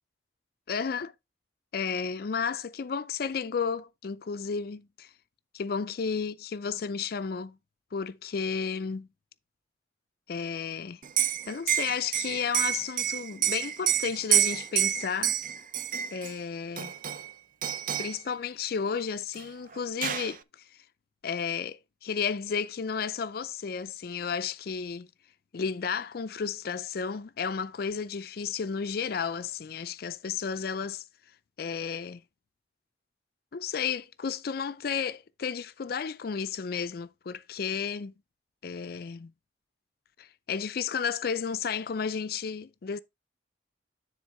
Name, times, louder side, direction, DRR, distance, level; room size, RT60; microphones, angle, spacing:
voice 1, 0.7-1.1 1.7-5.1 5.5-7.6 7.9-9.1 10.3-11.0 11.5-15.4 16.1-16.9 18.0-20.6 21.2-25.1 25.5-31.0 31.6-32.2 33.5-38.1 38.6-39.3 40.2-43.0, left 6 dB, 55° left, 0.4 m, -32 dB
Liquid, 11.0-16.3 16.8-17.3 17.6-18.2 19.4-19.5 19.7-20.4, right 11 dB, 45° right, 0.5 m, -28 dB
9.9 x 3.8 x 4.5 m
head